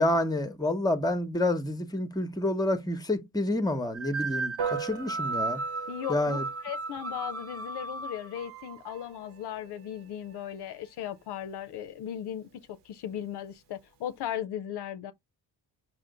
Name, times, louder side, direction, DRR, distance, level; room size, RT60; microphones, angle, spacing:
voice 1, 0.0-5.6 6.1-6.4, left 1 dB, 10° left, 0.8 m, -28 dB
sound 1, 3.9-9.0, right 3 dB, 35° right, 0.6 m, -35 dB
Piano, 4.6-14.3, right 7 dB, 75° right, 0.9 m, -43 dB
voice 2, 5.9-15.1, left 10 dB, 70° left, 0.5 m, -37 dB
4.2 x 2.1 x 3.8 m
supercardioid pair, 50°, 42 cm